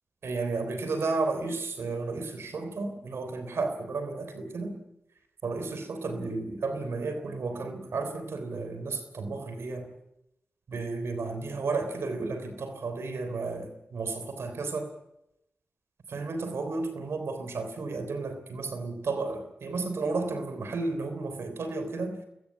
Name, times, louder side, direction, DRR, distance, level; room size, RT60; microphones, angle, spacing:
voice 1, 0.2-4.8 5.4-9.9 10.7-14.9 16.1-22.2, right 3 dB, 80° right, 8 dB, 3.5 m, -33 dB
22.0 x 20.5 x 8.5 m, 0.85 s
cardioid pair, 40°, 4 cm